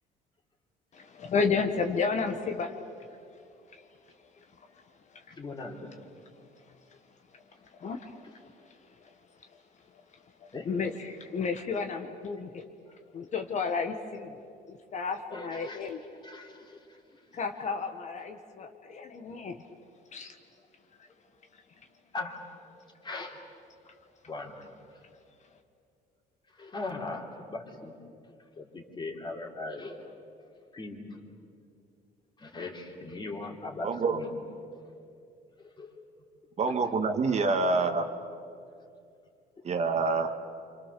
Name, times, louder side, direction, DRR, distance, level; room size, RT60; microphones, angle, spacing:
voice 1, 0.9-2.7 7.8-8.2 10.6-12.6 13.1-14.4 14.7-16.0 17.3-19.6 20.1-20.3, left 5 dB, 45° left, 5 dB, 1.5 m, -32 dB
voice 2, 5.4-5.9 10.5-10.8 13.2-13.4 15.3-17.2 18.7-19.1 22.1-22.7 23.0-23.4 24.3-24.8 26.5-28.0 28.6-30.1 30.7-31.2 32.4-34.4 35.6-36.0 36.8-36.9, left 2 dB, 25° left, 1 dB, 3.3 m, -40 dB
voice 3, 33.8-34.2 36.6-38.1 39.6-40.3, right 4 dB, 40° right, 6 dB, 1.7 m, -26 dB
27.5 x 26.0 x 6.8 m, 2.5 s
cardioid pair, 110°, 17 cm